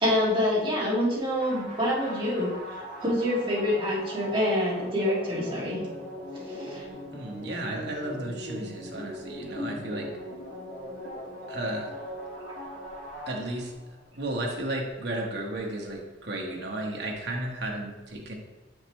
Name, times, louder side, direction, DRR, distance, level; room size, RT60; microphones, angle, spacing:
voice 1, 0.0-2.5 2.8-5.8 6.3-6.8 12.4-12.5, left 1 dB, 25° right, -7 dB, 1.9 m, -26 dB
sound 1, 1.4-13.9, equal, 40° left, 1.7 m, -40 dB
voice 2, 7.1-10.1 11.5-11.9 13.3-13.7 14.1-18.4, right 1 dB, 55° right, 0 dB, 1.1 m, -33 dB
7.1 x 5.2 x 3.1 m, 1.1 s
head